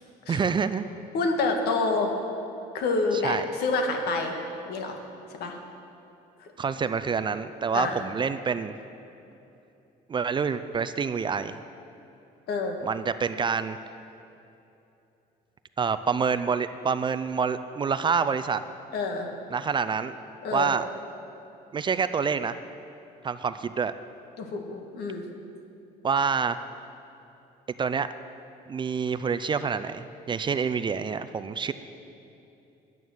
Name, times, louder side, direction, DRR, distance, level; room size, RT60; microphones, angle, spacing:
voice 1, 0.3-0.9 3.1-3.4 6.6-8.7 10.1-11.6 12.8-13.8 15.8-18.6 19.5-20.1 20.5-20.9 21.7-22.6 23.2-23.9 26.0-26.6 27.8-28.1 28.7-31.7, right 6 dB, 30° right, 12 dB, 0.4 m, -27 dB
voice 2, 1.1-2.1 2.7-4.3 4.7-5.0 5.4-5.6 6.4-6.5 7.7-8.0 12.5-12.8 18.9-19.3 20.4-20.7 24.4-25.2, left 3 dB, 75° left, 3 dB, 1.6 m, -27 dB
10.5 x 9.2 x 6.4 m, 2.8 s
cardioid pair, 110°, 17 cm